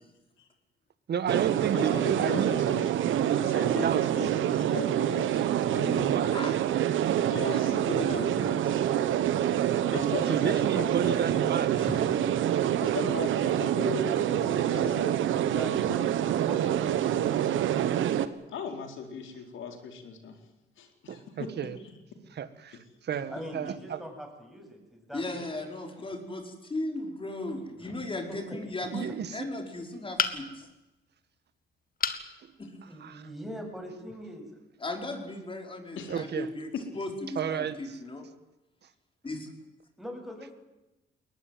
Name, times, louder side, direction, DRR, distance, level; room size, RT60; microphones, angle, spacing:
voice 1, 1.1-2.5 3.5-4.0 6.0-6.3 10.3-11.7 21.1-21.8 22.3-24.0 28.9-29.4 32.4-32.5 33.0-33.2 36.1-36.5 37.3-37.8, right 8 dB, 55° right, 13 dB, 1.8 m, -32 dB
sound 1, 1.3-18.3, right 11 dB, 80° right, 1.3 m, -26 dB
voice 2, 1.7-2.9 3.4-6.2 7.3-8.4 9.9-11.7 12.8-15.2 15.5-16.0 18.5-20.4 20.8-21.5 23.4-23.5 27.8-27.9 36.0-36.2 36.7-36.8, left 6 dB, 75° left, 5 dB, 4.3 m, -38 dB
voice 3, 7.5-8.8 11.8-11.9 14.3-15.0 25.1-30.7 32.6-32.8 34.8-38.3 39.2-39.5, left 2 dB, 25° left, 3 dB, 4.9 m, -37 dB
voice 4, 15.4-17.4 23.3-25.6 27.8-28.0 28.3-28.4 32.9-34.5 34.8-34.9 40.0-40.5, equal, ahead, 2 dB, 7.9 m, -41 dB
sound 2, 30.2-30.7 32.0-32.3 32.8-32.9 33.3-33.4, left 6 dB, 45° left, 2.0 m, -29 dB
21.5 x 19.5 x 9.3 m, 1.0 s
cardioid pair, 90°, 20 cm